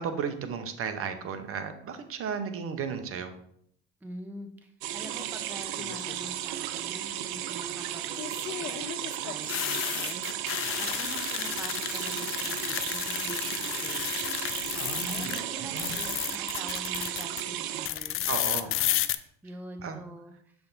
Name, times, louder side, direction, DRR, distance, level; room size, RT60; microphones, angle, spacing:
voice 1, 0.0-3.4 14.8-15.3 15.6-16.0 18.3-18.7 19.8-20.0, right 6 dB, 40° right, 8 dB, 0.9 m, -34 dB
voice 2, 4.0-9.0 9.2-10.5 10.8-18.2 18.6-20.5, right 1 dB, 5° right, 6 dB, 0.6 m, -46 dB
sound 1, 4.8-17.9, right 11 dB, 60° right, 0.6 m, -34 dB
sound 2, 5.8-6.3 8.1-15.4 15.7-17.4 17.9-19.2, left 13 dB, 40° left, 0.4 m, -32 dB
6.8 x 3.4 x 4.0 m, 0.68 s
hypercardioid pair, 70°, 33 cm